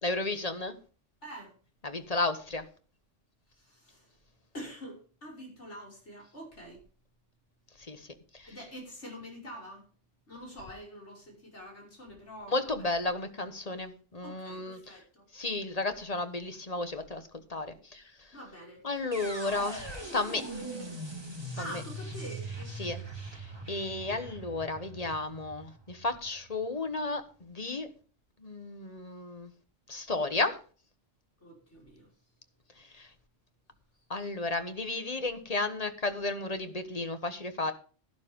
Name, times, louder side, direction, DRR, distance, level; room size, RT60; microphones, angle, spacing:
voice 1, 0.0-0.8 1.8-2.6 7.9-8.1 8.3-8.5 12.5-15.0 15.3-18.0 18.8-20.5 21.7-21.8 22.8-23.0 23.4-27.9 28.4-29.5 29.9-30.6 32.8-33.1 34.1-37.7, left 2 dB, 30° left, 9 dB, 1.3 m, -33 dB
voice 2, 1.2-1.5 3.6-4.1 4.5-6.8 8.5-9.8 10.3-12.7 14.2-15.2 18.3-18.9 19.4-20.2 20.4-21.0 21.6-23.0 31.4-32.1, equal, 65° left, -2 dB, 6.0 m, -46 dB
sound 1, 19.1-27.1, right 2 dB, 20° right, 2.3 m, -42 dB
12.0 x 11.5 x 3.7 m, 0.38 s
omnidirectional pair, 1.3 m